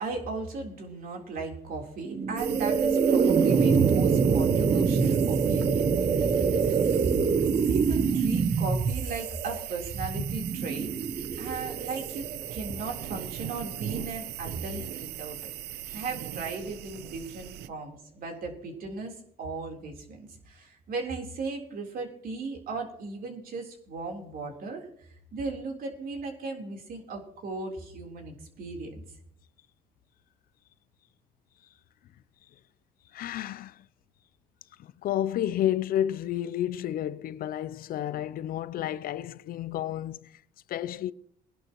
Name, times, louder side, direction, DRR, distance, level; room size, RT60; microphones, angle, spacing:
voice 1, 0.0-6.1 7.0-7.1 7.7-10.9 11.4-15.5 15.9-29.0, right 3 dB, 60° right, 3.7 m, -37 dB
sound 1, 2.1-13.2, right 5 dB, 35° right, 0.8 m, -25 dB
sound 2, 2.4-17.7, right 12 dB, 75° right, 0.7 m, -39 dB
voice 2, 33.1-33.8 34.8-40.4 40.7-41.1, left 11 dB, 60° left, 0.5 m, -31 dB
21.0 x 11.0 x 3.0 m
cardioid pair, 110°, 17 cm